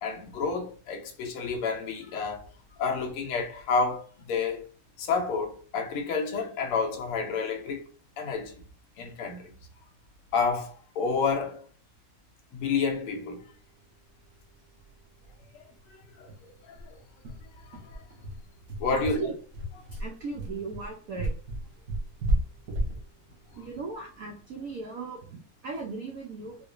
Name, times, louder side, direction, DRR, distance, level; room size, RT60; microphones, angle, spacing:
voice 1, 0.0-2.4 2.8-4.6 5.0-7.9 8.2-8.5 9.0-9.5 10.3-11.6 12.5-13.4 16.2-16.5 16.9-17.0 18.8-19.2, left 4 dB, 90° left, 1.6 m, -29 dB
sound 1, 14.4-14.5 14.8-14.9 15.2-15.3 15.7-15.8 16.3-24.7, right 1 dB, 60° right, 1.0 m, -33 dB
voice 2, 18.9-19.4 19.9-21.3 23.6-26.6, right 3 dB, 90° right, 0.7 m, -37 dB
4.7 x 2.1 x 2.5 m
omnidirectional pair, 2.3 m